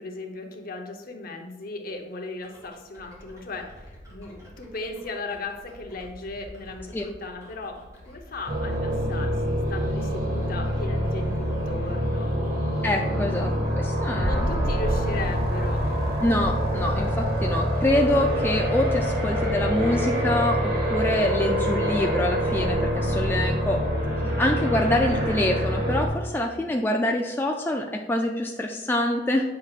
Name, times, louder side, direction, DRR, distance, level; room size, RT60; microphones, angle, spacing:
voice 1, 0.0-12.4 13.1-13.3 14.2-15.9, left 3 dB, 55° left, 3 dB, 0.9 m, -37 dB
sound 1, 2.4-22.1, left 1 dB, 20° right, 2.1 m, -47 dB
sound 2, 8.5-26.1, equal, 55° right, 1.5 m, -25 dB
voice 2, 12.8-14.4 16.2-23.8 24.4-29.4, left 1 dB, 10° left, 1 dB, 0.4 m, -25 dB
8.6 x 6.2 x 2.4 m, 1.1 s
head